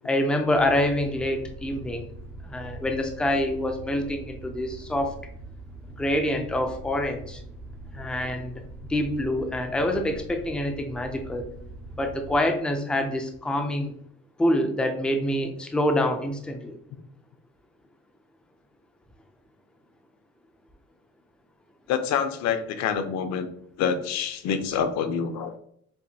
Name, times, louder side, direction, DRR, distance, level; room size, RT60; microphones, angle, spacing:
voice 1, 0.0-2.1 2.4-5.1 6.0-7.4 7.9-8.6 8.9-11.4 12.0-13.9 14.4-16.8, left 1 dB, 5° left, 5 dB, 0.3 m, -26 dB
sound 1, 0.5-12.4, right 2 dB, 70° right, 1.4 m, -42 dB
voice 2, 21.9-23.5 23.8-25.6, left 7 dB, 65° left, 9 dB, 0.6 m, -26 dB
7.1 x 2.5 x 2.7 m, 0.68 s
cardioid pair, 180°, 29 cm